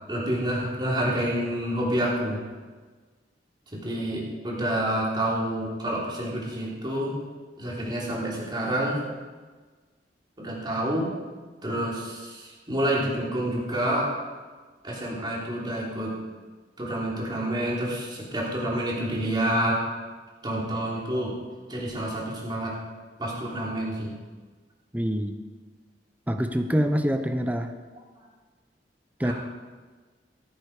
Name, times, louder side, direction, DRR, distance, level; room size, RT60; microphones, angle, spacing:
voice 1, 0.1-2.4 3.7-7.1 7.6-9.0 10.4-11.1 11.6-14.1 14.8-16.2 16.8-19.8 20.4-21.4 21.7-22.7 23.2-24.1 29.2-29.3, right 1 dB, 25° right, -4 dB, 3.3 m, -28 dB
voice 2, 24.9-25.4 26.3-27.7 29.2-29.3, equal, 10° right, 7 dB, 0.8 m, -25 dB
14.5 x 9.6 x 4.9 m, 1.4 s
head